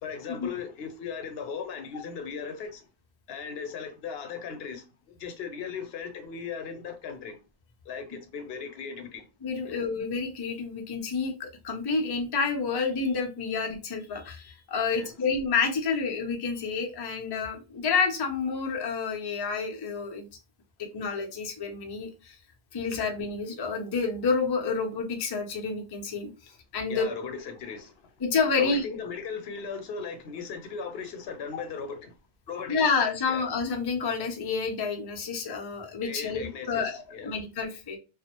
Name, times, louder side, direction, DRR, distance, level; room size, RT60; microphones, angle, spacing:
voice 1, 0.0-2.9 3.3-7.4 7.9-9.3 9.7-9.8 14.9-15.1 26.9-28.1 28.6-32.2 32.5-33.0 33.3-33.5 36.0-37.4, left 6 dB, 75° left, 0.8 m, -37 dB
voice 2, 9.4-20.2 20.8-22.4 22.7-27.1 28.2-28.8 32.7-38.0, left 5 dB, 35° left, 0.4 m, -29 dB
2.4 x 2.0 x 2.8 m
omnidirectional pair, 1.1 m